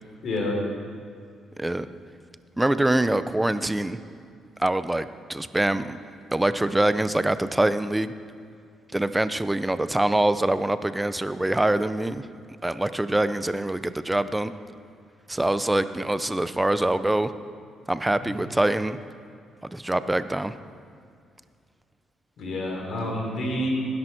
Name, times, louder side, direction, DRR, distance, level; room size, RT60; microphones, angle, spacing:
voice 1, 0.2-0.6 18.2-18.5 22.4-23.7, left 1 dB, 65° left, -1 dB, 3.6 m, -29 dB
voice 2, 2.6-4.0 4.6-6.0 6.3-8.1 8.9-12.2 12.6-14.5 15.3-17.3 17.9-19.0 19.6-20.5, right 1 dB, 10° right, 13 dB, 0.6 m, -24 dB
19.0 x 10.5 x 4.5 m, 2.3 s
cardioid pair, 90°, 0 cm